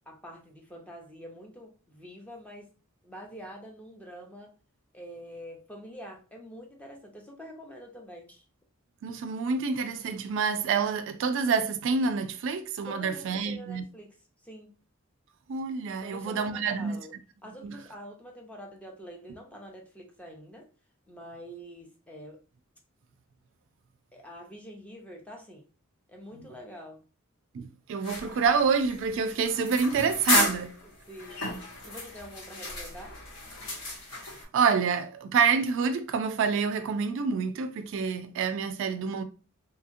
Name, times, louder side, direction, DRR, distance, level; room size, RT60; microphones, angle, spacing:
voice 1, 0.1-2.7 3.0-4.6 4.9-8.4 12.9-14.2 14.4-14.7 16.0-17.1 17.4-20.7 21.1-22.4 24.1-25.6 26.1-27.0 30.8-33.2, equal, 5° left, 0.6 m, -46 dB
voice 2, 9.0-13.8 15.5-17.0 17.6-17.8 27.5-30.7 34.5-39.2, right 5 dB, 65° right, 0.3 m, -27 dB
sound 1, 28.0-34.4, left 2 dB, 90° left, 1.7 m, -33 dB
2.8 x 2.7 x 2.5 m
head